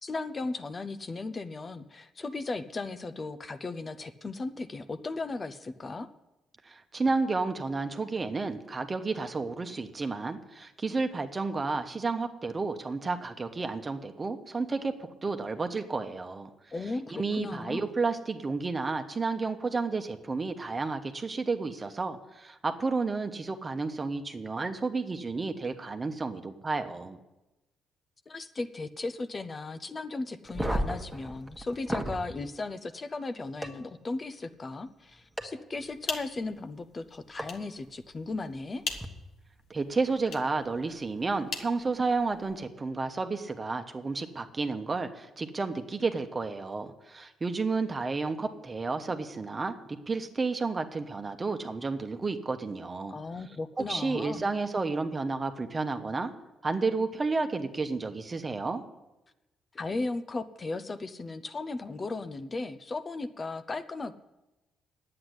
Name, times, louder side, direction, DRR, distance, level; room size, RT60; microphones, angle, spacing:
voice 1, 0.0-6.1 16.7-17.9 28.3-38.8 53.1-54.4 59.7-64.1, left 3 dB, 30° left, 11 dB, 0.7 m, -36 dB
voice 2, 6.6-16.5 17.1-27.2 39.7-53.2 53.8-56.3 56.6-58.8, right 3 dB, 30° right, 7 dB, 1.1 m, -31 dB
sound 1, 30.4-32.2 33.6-33.7 35.4-35.5 37.4-37.5 38.9-39.0, right 1 dB, 5° right, 1.5 m, -32 dB
sound 2, 35.8-42.6, left 5 dB, 70° left, 1.4 m, -43 dB
10.0 x 8.8 x 8.0 m, 1.0 s
cardioid pair, 90°, 0 cm